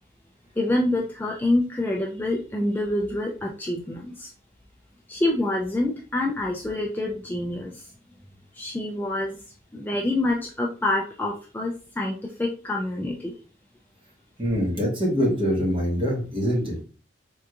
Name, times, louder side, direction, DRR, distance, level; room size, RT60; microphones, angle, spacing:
voice 1, 0.6-4.3 5.1-7.9 8.5-9.4 9.7-13.3, left 1 dB, 10° left, -2 dB, 0.3 m, -26 dB
voice 2, 14.4-16.8, equal, 30° right, -3 dB, 1.2 m, -24 dB
3.5 x 2.9 x 2.3 m, 0.37 s
head